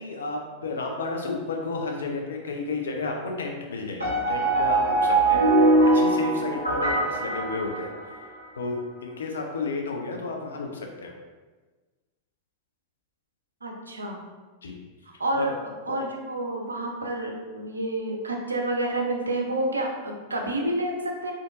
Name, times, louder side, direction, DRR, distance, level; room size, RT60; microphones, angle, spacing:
voice 1, 0.0-7.9 8.6-11.1 14.6-14.8 15.3-15.5 15.9-16.0, left 3 dB, 65° left, 2 dB, 0.5 m, -32 dB
sound 1, 4.0-8.3, right 2 dB, 85° left, 1.0 m, -22 dB
voice 2, 13.6-14.2 15.1-21.3, right 1 dB, 80° right, 1 dB, 0.5 m, -29 dB
3.6 x 2.5 x 2.4 m, 1.3 s
figure-of-eight pair, 90°, 0 cm